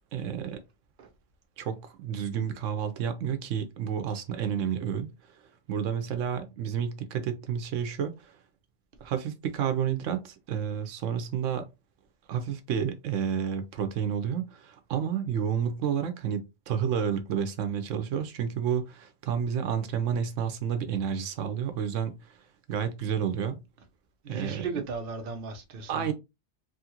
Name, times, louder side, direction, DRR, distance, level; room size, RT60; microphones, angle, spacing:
voice 1, 0.1-0.6 1.6-5.1 5.7-8.4 9.0-11.7 12.3-16.4 16.7-22.1 22.7-23.6 24.3-24.7 25.9-26.1, right 8 dB, 90° right, 1.0 m, -30 dB
voice 2, 24.2-26.1, right 4 dB, 55° right, 0.8 m, -36 dB
3.1 x 2.4 x 2.8 m
omnidirectional pair, 1.2 m